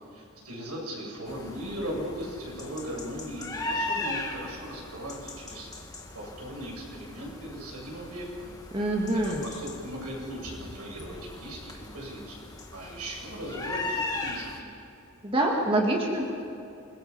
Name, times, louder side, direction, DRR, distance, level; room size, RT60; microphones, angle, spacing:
voice 1, 0.1-5.7 6.1-8.5 9.2-12.4 12.7-14.7, equal, 90° right, -2 dB, 7.9 m, -38 dB
sound 1, 1.3-14.6, left 2 dB, 15° left, 1.9 m, -38 dB
voice 2, 8.7-9.4 15.2-16.4, right 1 dB, 25° right, -1 dB, 2.1 m, -26 dB
27.5 x 21.5 x 5.7 m, 2.7 s
head